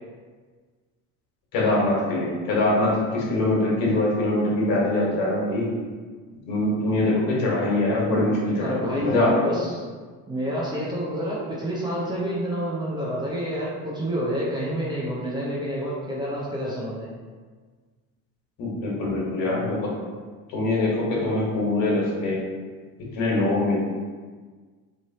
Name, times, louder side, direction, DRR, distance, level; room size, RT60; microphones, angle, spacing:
voice 1, 1.5-5.7 6.4-9.7 18.6-19.9 20.5-22.4 23.1-23.8, left 2 dB, 65° left, -4 dB, 1.4 m, -23 dB
voice 2, 8.6-9.8 10.3-17.1, equal, 10° right, -7 dB, 0.6 m, -28 dB
3.2 x 2.6 x 4.1 m, 1.5 s
cardioid pair, 140°, 37 cm